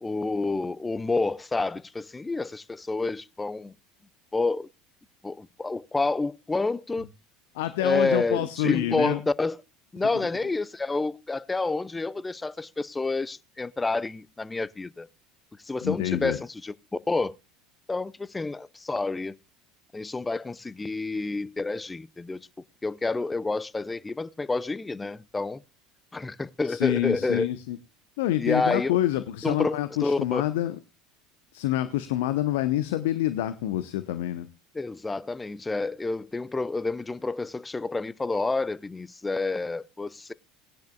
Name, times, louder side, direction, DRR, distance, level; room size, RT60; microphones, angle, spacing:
voice 1, 0.0-3.7 4.3-4.7 5.2-7.1 7.8-9.6 9.9-15.1 15.6-16.7 17.1-17.4 17.9-19.4 19.9-22.4 22.8-25.6 26.1-27.5 28.4-28.9 29.4-30.4 34.7-40.3, left 3 dB, 15° left, 0.5 m, -29 dB
voice 2, 7.5-9.2 15.8-16.4 26.6-27.8 28.2-30.8 31.5-34.5, left 14 dB, 65° left, 0.7 m, -27 dB
19.5 x 10.5 x 2.3 m
figure-of-eight pair, 70°, 0 cm